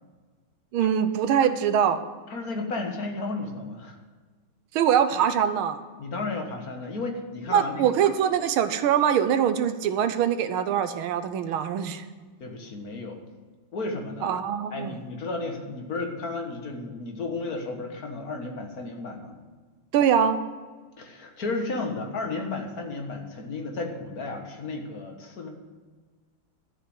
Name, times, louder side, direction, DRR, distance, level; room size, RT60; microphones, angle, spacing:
voice 1, 0.7-2.0 4.7-5.8 7.5-12.0 14.2-15.0 19.9-20.4, right 9 dB, 75° right, 10 dB, 1.6 m, -23 dB
voice 2, 2.3-4.0 6.0-7.9 12.4-13.2 13.7-14.3 14.7-19.4 21.0-25.5, left 3 dB, 45° left, 3 dB, 1.8 m, -33 dB
12.0 x 6.2 x 7.8 m, 1.4 s
omnidirectional pair, 2.3 m